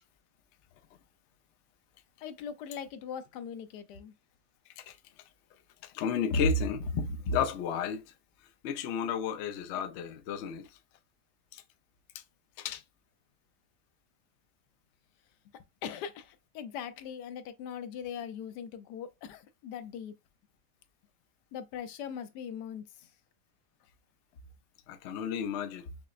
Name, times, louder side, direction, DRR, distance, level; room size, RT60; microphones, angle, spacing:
voice 1, 2.2-4.1 15.5-20.1 21.5-23.1, left 8 dB, 85° left, 1.2 m, -41 dB
voice 2, 5.8-8.1 8.6-10.7 11.5-11.6 12.6-12.8 24.9-25.9, left 5 dB, 65° left, 0.7 m, -32 dB
5.7 x 2.1 x 2.4 m
omnidirectional pair, 1.7 m